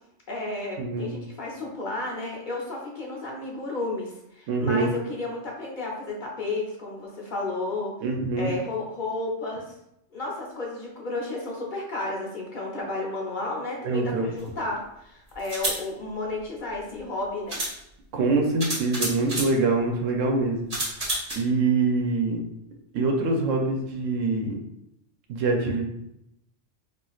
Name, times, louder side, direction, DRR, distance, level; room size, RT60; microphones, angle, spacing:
voice 1, 0.3-7.9 8.4-9.6 10.1-17.6, left 2 dB, 45° left, -2 dB, 0.7 m, -32 dB
voice 2, 0.8-1.1 4.5-4.9 8.0-8.5 13.8-14.3 18.1-20.7 21.4-22.4 22.9-24.5 25.3-25.8, right 3 dB, 90° right, 1 dB, 1.0 m, -24 dB
sound 1, 14.4-14.5 15.4-15.8 17.0-17.1 17.5-17.8 18.6-19.5 20.7-21.3, right 1 dB, 35° right, 0.9 m, -29 dB
4.4 x 2.5 x 2.3 m, 0.81 s
omnidirectional pair, 1.3 m